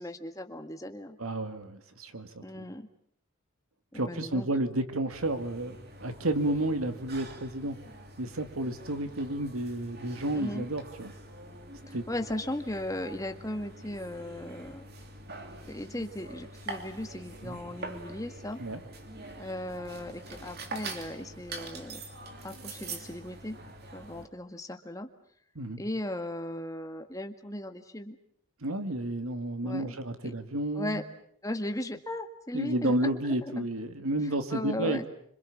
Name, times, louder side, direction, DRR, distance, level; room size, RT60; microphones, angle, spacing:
voice 1, 0.0-1.2 2.4-2.9 3.9-4.5 10.3-10.6 11.9-14.9 15.7-18.6 19.4-22.0 22.4-23.6 23.9-25.1 25.8-28.2 29.6-29.9 30.2-30.3 30.7-31.0 31.4-33.6 34.5-35.1, left 1 dB, 15° left, 5 dB, 1.7 m, -37 dB
voice 2, 1.2-2.6 3.9-7.8 8.2-11.1 11.9-12.0 17.4-17.6 18.6-18.8 25.6-25.8 28.6-31.0 32.5-35.1, right 1 dB, 85° right, 9 dB, 2.3 m, -31 dB
sound 1, 5.1-24.3, right 2 dB, 45° right, 3.0 m, -45 dB
26.5 x 26.5 x 7.3 m, 0.64 s
head